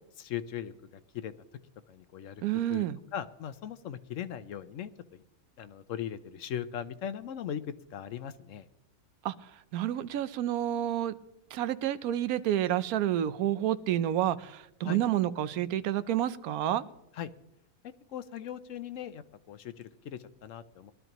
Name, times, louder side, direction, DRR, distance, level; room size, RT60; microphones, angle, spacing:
voice 1, 0.2-0.7 1.1-1.3 1.9-2.4 2.7-2.8 3.1-4.9 5.6-7.6 7.9-8.6 14.8-15.0 17.1-17.3 18.1-20.9, left 9 dB, 70° left, 13 dB, 1.0 m, -39 dB
voice 2, 2.4-3.0 9.2-9.3 9.7-11.1 11.5-16.8, right 12 dB, 90° right, 15 dB, 1.1 m, -29 dB
21.5 x 12.0 x 3.0 m, 0.85 s
omnidirectional pair, 1.5 m